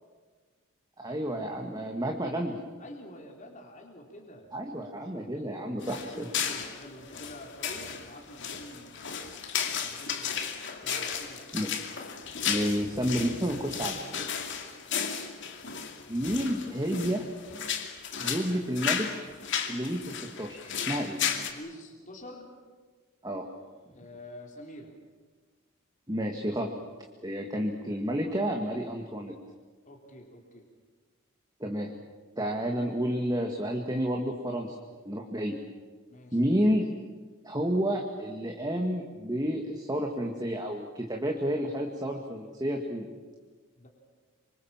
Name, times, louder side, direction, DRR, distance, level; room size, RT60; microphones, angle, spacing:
voice 1, 1.0-2.6 4.5-6.3 11.5-11.7 12.5-14.2 16.1-17.3 18.2-19.1 19.7-21.2 23.2-23.5 26.1-26.7 27.2-29.3 31.6-31.9 32.4-34.8 35.0-35.6 36.3-36.9 37.4-43.1, equal, 20° right, 1 dB, 2.0 m, -30 dB
voice 2, 2.8-4.5 5.4-9.3 9.8-10.6 10.8-11.4 12.5-12.7 14.7-15.2 21.5-22.5 23.9-24.9 29.9-30.7 36.1-36.4 43.8-43.9, left 1 dB, 35° left, 1 dB, 3.5 m, -47 dB
sound 1, 5.8-21.5, left 7 dB, 55° left, 2.6 m, -34 dB
26.5 x 25.0 x 7.4 m, 1.4 s
head